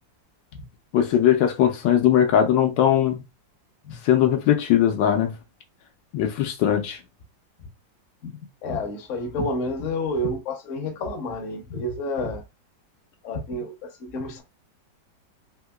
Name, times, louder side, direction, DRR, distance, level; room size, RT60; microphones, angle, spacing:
voice 1, 0.9-3.2 4.0-5.3 6.1-7.0, left 10 dB, 80° left, 1.3 m, -20 dB
voice 2, 8.2-12.4 13.2-14.4, left 1 dB, 55° left, 1.0 m, -30 dB
3.7 x 2.7 x 2.2 m
omnidirectional pair, 2.0 m